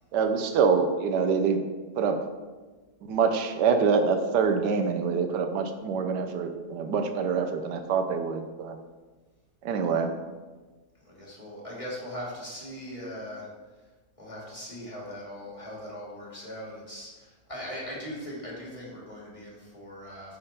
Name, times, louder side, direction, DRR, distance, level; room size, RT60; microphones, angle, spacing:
voice 1, 0.1-1.6 2.0-2.2 3.1-8.8 9.6-10.1, right 5 dB, 90° right, 7 dB, 1.4 m, -25 dB
voice 2, 11.0-13.5 14.2-20.4, equal, 20° left, -5 dB, 2.4 m, -40 dB
9.6 x 4.4 x 5.2 m, 1.3 s
omnidirectional pair, 1.8 m